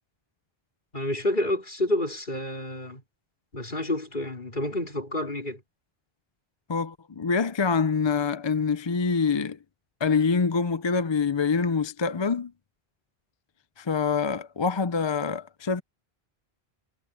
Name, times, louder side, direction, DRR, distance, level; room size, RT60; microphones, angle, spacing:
voice 1, 0.9-3.0 3.5-5.6, left 1 dB, 50° left, 4.4 m, -29 dB
voice 2, 6.7-9.6 10.0-12.5 13.8-15.8, left 5 dB, 35° left, 0.5 m, -25 dB
omnidirectional pair, 1.1 m